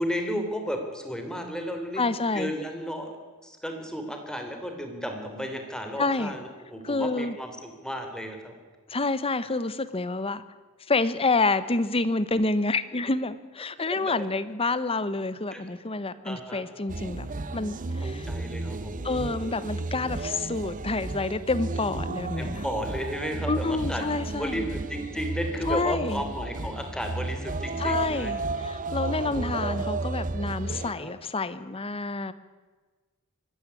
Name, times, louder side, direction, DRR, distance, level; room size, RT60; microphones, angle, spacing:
voice 1, 0.0-2.1 2.3-3.2 3.4-8.5 13.8-14.2 15.5-15.6 16.2-16.6 18.0-18.9 22.4-24.1 24.4-28.3 29.0-29.8 31.0-31.1, equal, 5° left, 4 dB, 3.3 m, -33 dB
voice 2, 2.0-2.5 6.0-6.3 6.8-7.3 8.9-10.4 10.9-17.3 17.5-18.3 19.0-22.6 23.5-24.7 25.6-26.2 27.8-32.3, left 3 dB, 25° left, 15 dB, 1.0 m, -28 dB
sound 1, 16.9-30.9, right 2 dB, 35° right, 0.9 m, -33 dB
24.0 x 13.0 x 9.7 m, 1.4 s
head